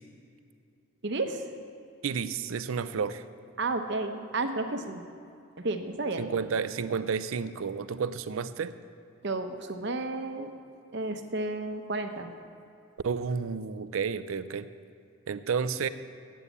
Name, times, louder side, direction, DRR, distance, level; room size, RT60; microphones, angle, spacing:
voice 1, 1.0-1.5 3.6-5.0 5.6-6.3 9.2-10.5 10.9-12.3, right 2 dB, 55° right, 7 dB, 0.8 m, -32 dB
voice 2, 2.0-3.2 6.2-8.7 13.0-14.7 15.3-15.9, right 6 dB, 80° right, 13 dB, 0.5 m, -31 dB
9.2 x 8.2 x 8.1 m, 2.5 s
head